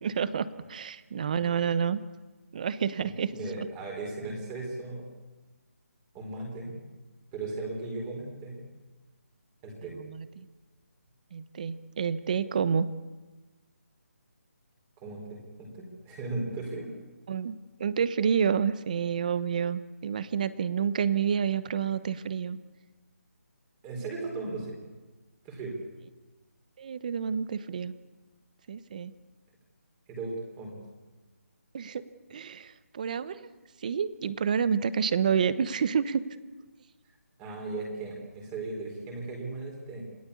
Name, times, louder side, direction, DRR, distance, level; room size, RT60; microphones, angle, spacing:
voice 1, 0.0-2.0 2.5-3.3 3.6-3.7 10.0-10.5 11.3-12.9 17.3-22.6 26.8-27.9 28.7-29.1 31.7-32.0 32.3-33.5 33.8-36.2, right 7 dB, 30° right, 15 dB, 1.0 m, -29 dB
voice 2, 3.0-5.0 6.1-6.8 7.3-8.6 9.6-9.9 15.0-16.9 23.8-24.7 25.4-25.8 30.1-30.8 37.4-40.1, right 2 dB, 15° right, 1 dB, 4.2 m, -37 dB
27.5 x 18.0 x 8.5 m, 1.2 s
hypercardioid pair, 170°, 8 cm